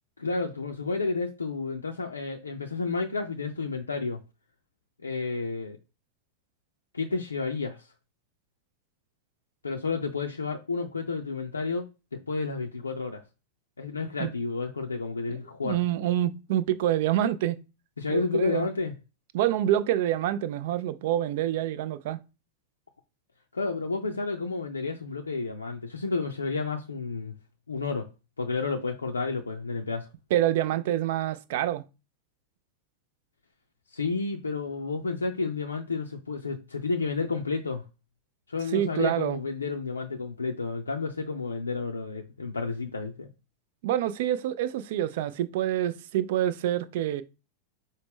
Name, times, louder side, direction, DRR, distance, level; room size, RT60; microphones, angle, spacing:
voice 1, 0.2-4.2 5.0-5.8 6.9-7.8 9.6-13.2 13.8-15.8 18.0-18.9 23.5-27.3 27.7-28.1 28.4-30.1 33.9-37.8 38.5-43.3, left 4 dB, 75° left, 0.4 m, -31 dB
voice 2, 15.6-17.6 18.1-18.7 19.3-22.2 30.3-31.8 38.7-39.4 43.8-47.2, right 12 dB, 55° right, 0.3 m, -27 dB
4.8 x 2.0 x 3.5 m
figure-of-eight pair, 90°, 0 cm